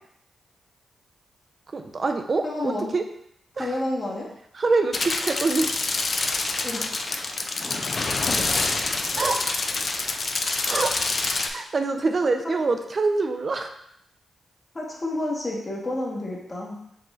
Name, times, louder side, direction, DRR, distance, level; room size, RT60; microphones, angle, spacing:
voice 1, 1.7-3.0 3.6-3.7 4.5-5.7 9.2-9.6 10.6-10.9 11.5-13.7, right 3 dB, 50° right, 6 dB, 0.5 m, -25 dB
voice 2, 2.4-2.9 3.6-4.3 6.6-6.9 12.4-12.5 14.7-16.7, left 1 dB, 35° left, -3 dB, 1.1 m, -29 dB
sound 1, 4.9-11.5, left 3 dB, 50° left, 0.4 m, -26 dB
4.8 x 3.0 x 2.4 m, 0.74 s
supercardioid pair, 40°, 0 cm